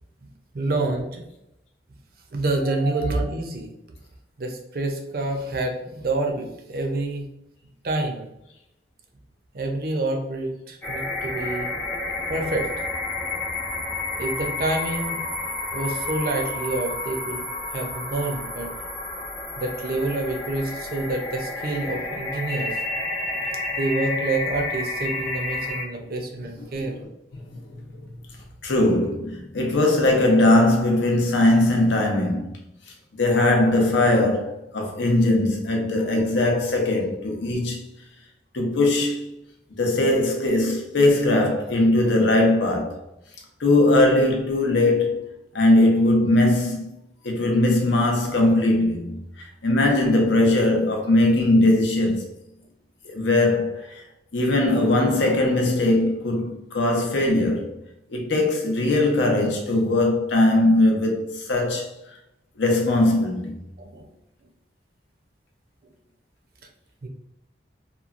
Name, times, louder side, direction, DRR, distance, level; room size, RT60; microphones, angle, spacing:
voice 1, 0.5-1.2 2.3-3.7 4.4-7.3 7.8-8.3 9.5-11.7 12.3-12.8 14.2-15.2 15.7-18.7 19.6-22.8 23.3-23.4 23.7-26.9 63.8-64.1 67.0-67.1, right 2 dB, 55° right, 0.5 m, -27 dB
sound 1, 10.8-25.8, left 2 dB, 10° left, 0.5 m, -30 dB
voice 2, 27.3-28.0 28.6-32.6 33.2-37.8 38.5-39.3 39.7-43.0 43.6-45.3 45.5-46.8 47.2-52.3 53.0-54.0 54.3-57.7 58.1-61.9 62.6-63.6, left 2 dB, 85° left, 0.7 m, -20 dB
2.9 x 2.2 x 2.4 m
head